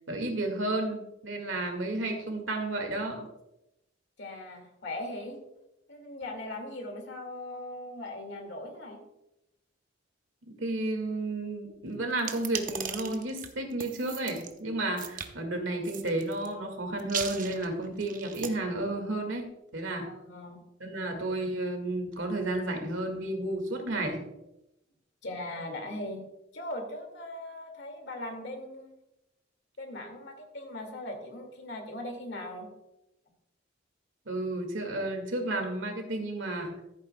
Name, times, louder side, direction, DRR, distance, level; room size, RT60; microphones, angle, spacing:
voice 1, 0.1-3.2 10.6-19.4 19.7-20.1 20.8-24.3 34.3-36.8, right 2 dB, 85° right, 4 dB, 1.9 m, -32 dB
voice 2, 4.2-5.4 5.9-9.0 20.0-20.6 25.2-26.3 26.5-28.9 29.8-32.7, left 1 dB, 65° left, 4 dB, 2.1 m, -39 dB
sound 1, 12.2-14.5 15.0-15.3 15.8-16.5 17.0-18.5, right 7 dB, 45° right, 0.8 m, -37 dB
14.5 x 8.6 x 2.2 m, 0.90 s
head